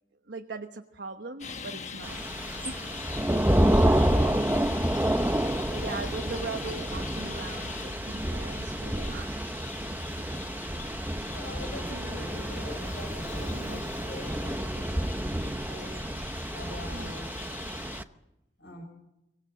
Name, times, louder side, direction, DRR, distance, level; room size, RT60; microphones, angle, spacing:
voice 1, 0.2-2.2 2.5-2.8 3.7-4.5 5.6-9.5 11.9-12.3 13.4-13.9 16.9-17.2, right 3 dB, 85° right, 5 dB, 1.1 m, -41 dB
Traffic noise roadway noise, 1.4-18.0, left 6 dB, 40° left, 1.1 m, -42 dB
Thunder / Rain, 2.0-18.0, right 1 dB, 10° right, 0.7 m, -29 dB
voice 2, 4.0-4.4 10.1-10.4 11.1-16.0 16.5-17.6 18.6-18.8, left 1 dB, 85° left, 3 dB, 5.2 m, -44 dB
24.5 x 19.0 x 7.7 m, 0.91 s
head